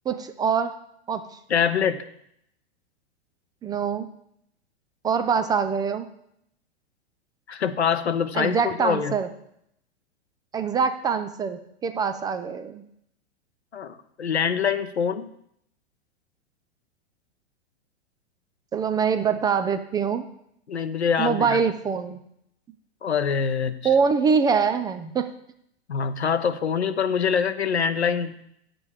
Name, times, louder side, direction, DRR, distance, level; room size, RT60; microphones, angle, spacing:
voice 1, 0.1-0.8 1.1-1.3 3.6-4.1 5.0-6.1 8.3-9.3 10.5-12.8 18.7-20.3 21.2-22.2 23.8-25.3, right 6 dB, 15° right, 10 dB, 0.4 m, -24 dB
voice 2, 1.5-2.0 7.5-9.1 13.7-15.3 20.7-21.6 23.0-23.9 25.9-28.4, left 7 dB, 85° left, 11 dB, 0.8 m, -24 dB
9.5 x 7.6 x 4.8 m, 0.73 s
hypercardioid pair, 105°, 32 cm